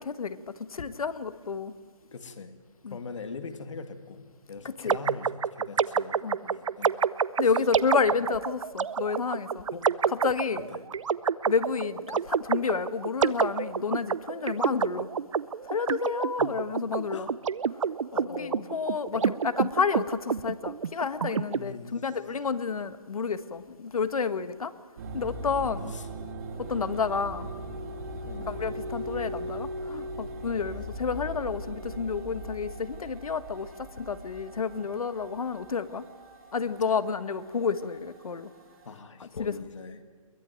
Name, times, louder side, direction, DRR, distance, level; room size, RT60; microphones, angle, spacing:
voice 1, 0.0-1.7 2.8-3.0 4.6-5.0 6.2-6.4 7.4-9.7 10.1-10.7 11.5-15.1 15.7-17.3 18.3-24.7 25.1-25.9 26.6-27.5 28.5-36.1 36.5-38.5 39.2-39.5, left 5 dB, 75° left, 1.5 m, -30 dB
voice 2, 2.1-2.5 2.9-7.0 8.1-8.3 9.7-9.9 10.5-10.8 16.4-16.5 17.1-17.3 18.1-18.7 19.1-19.3 21.5-22.1 25.9-26.1 28.2-28.6 38.9-40.0, left 4 dB, 55° left, 2.2 m, -42 dB
sound 1, 4.9-21.6, right 7 dB, 60° right, 0.7 m, -28 dB
sound 2, 25.0-39.1, right 1 dB, 30° right, 2.3 m, -39 dB
22.5 x 18.5 x 9.2 m
hypercardioid pair, 175°, 19 cm